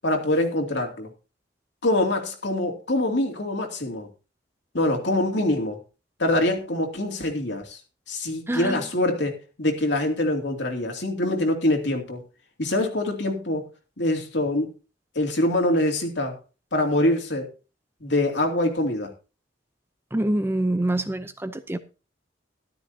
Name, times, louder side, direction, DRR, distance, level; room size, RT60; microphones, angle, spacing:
voice 1, 0.0-1.1 1.8-4.1 4.7-5.8 6.2-7.8 8.1-12.2 12.6-13.7 14.0-14.7 15.1-16.4 16.7-17.5 18.0-19.1, left 1 dB, 70° left, 2.7 m, -24 dB
voice 2, 8.5-8.8 20.1-21.8, right 1 dB, 15° right, 0.6 m, -25 dB
13.5 x 12.5 x 2.8 m
head